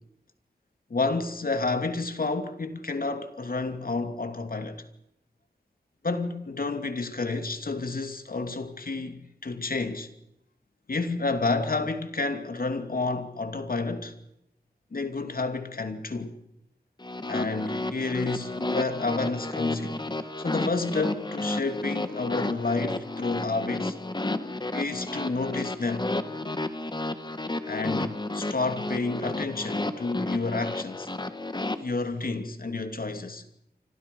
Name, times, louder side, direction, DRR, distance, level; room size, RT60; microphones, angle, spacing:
voice 1, 0.9-4.8 6.0-10.1 10.9-14.1 14.9-16.3 17.3-20.0 20.4-24.0 24.7-26.1 27.6-31.1 31.8-33.4, left 3 dB, 60° left, 2.6 m, -30 dB
sound 1, 17.0-31.8, left 2 dB, 25° left, 1.9 m, -32 dB
29.5 x 25.5 x 5.5 m
wide cardioid pair, 85°, 17 cm